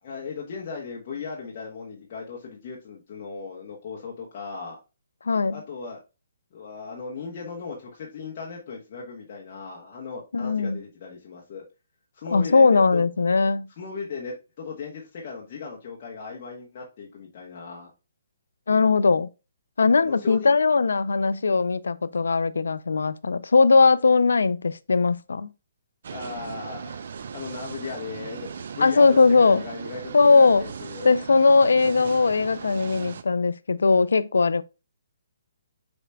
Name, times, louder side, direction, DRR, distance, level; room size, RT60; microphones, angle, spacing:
voice 1, 0.0-4.8 5.5-6.0 6.5-11.6 12.1-13.0 13.8-17.9 20.0-20.6 26.1-27.0 27.3-31.1, left 5 dB, 40° left, 1.0 m, -37 dB
voice 2, 5.3-5.6 10.3-10.8 12.3-13.7 18.7-19.3 19.8-25.5 28.8-29.6 30.1-30.6 31.0-34.6, left 4 dB, 85° left, 0.3 m, -19 dB
sound 1, 26.0-33.2, right 6 dB, 60° right, 0.4 m, -38 dB
4.8 x 4.3 x 2.2 m
hypercardioid pair, 150°, 0 cm